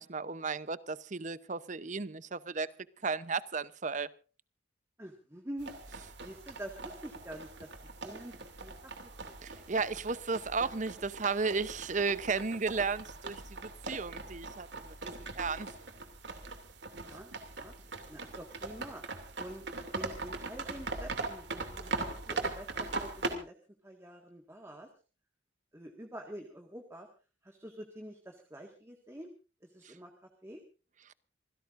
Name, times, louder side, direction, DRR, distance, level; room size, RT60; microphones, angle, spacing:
voice 1, 0.0-2.7 3.0-4.1 9.4-15.7 29.8-30.0 31.1-31.2, right 4 dB, 40° right, 0.8 m, -34 dB
voice 2, 5.0-5.8 6.2-8.3 8.6-9.4 16.9-17.7 18.1-19.0 19.4-19.6 19.9-23.5 23.8-24.9 25.7-27.1 27.4-29.3 29.6-30.1 30.4-30.6, right 1 dB, 15° right, 1.8 m, -47 dB
sound 1, 5.6-23.3, right 3 dB, 65° right, 2.6 m, -41 dB
27.0 x 16.5 x 2.6 m
head